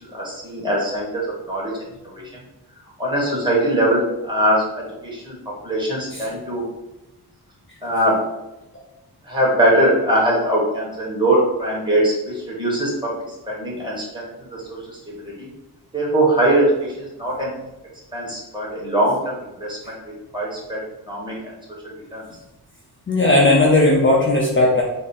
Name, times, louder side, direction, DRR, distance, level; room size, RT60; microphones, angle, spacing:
voice 1, 0.0-1.7 2.1-2.4 3.0-6.7 7.8-8.2 9.2-13.1 13.5-15.5 15.9-17.5 18.1-19.9 20.3-20.8 21.1-21.5 22.1-22.2, right 1 dB, 10° right, -5 dB, 1.0 m, -22 dB
voice 2, 23.1-24.8, left 2 dB, 30° left, -3 dB, 0.5 m, -16 dB
3.5 x 2.0 x 4.1 m, 0.96 s
wide cardioid pair, 155°, 39 cm